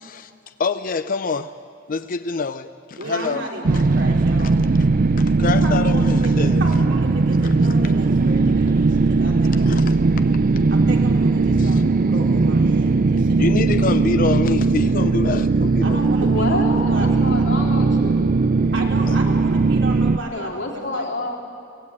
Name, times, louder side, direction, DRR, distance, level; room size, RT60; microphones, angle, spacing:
voice 1, 0.0-0.3 0.6-1.5 1.9-3.4 3.7-3.8 5.2-6.6 9.5-10.0 11.6-11.7 13.4-16.1 19.1-19.2, left 4 dB, 45° left, 11 dB, 0.5 m, -26 dB
voice 2, 3.0-4.6 5.4-10.1 10.7-14.1 15.8-17.5 18.7-21.1, right 2 dB, 70° right, 0 dB, 3.7 m, -34 dB
sound 1, 3.6-20.2, right 3 dB, 45° right, 0.5 m, -18 dB
voice 3, 16.2-18.3 20.2-21.4, left 2 dB, 75° left, -2 dB, 3.7 m, -28 dB
24.5 x 17.5 x 8.6 m, 2.5 s
head